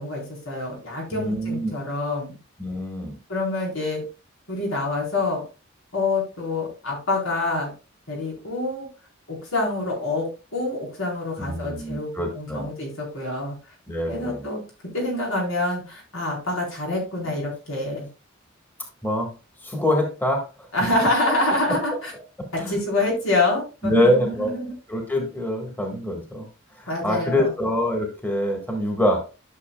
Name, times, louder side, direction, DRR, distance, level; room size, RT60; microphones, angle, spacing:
voice 1, 0.0-2.4 3.3-4.0 4.5-5.4 5.9-7.7 8.1-8.9 9.3-13.5 14.0-14.6 14.9-18.1 20.7-22.1 22.7-24.7 26.9-27.5, left 2 dB, 85° left, -2 dB, 4.3 m, -26 dB
voice 2, 1.1-1.7 2.6-3.2 11.4-12.7 13.9-14.5 19.0-19.3 19.6-21.1 22.4-22.8 23.8-24.5 24.9-26.4 26.7-29.2, left 1 dB, 10° left, 2 dB, 1.6 m, -25 dB
12.5 x 6.4 x 2.3 m, 0.31 s
head